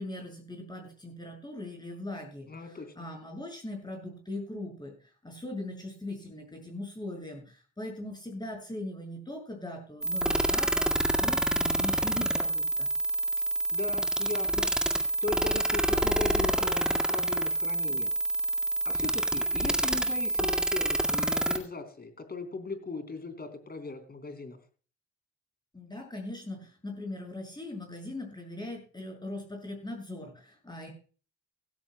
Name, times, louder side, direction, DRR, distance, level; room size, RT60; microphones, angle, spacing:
voice 1, 0.0-10.9 11.2-12.9 25.7-30.9, left 1 dB, 15° left, 1 dB, 6.8 m, -40 dB
voice 2, 2.5-3.1 13.7-18.1 18.9-24.6, left 3 dB, 30° left, 7 dB, 3.5 m, -38 dB
sound 1, 10.0-21.6, right 1 dB, 5° right, 2.0 m, -28 dB
16.5 x 14.5 x 2.2 m, 0.38 s
cardioid pair, 90°, 30 cm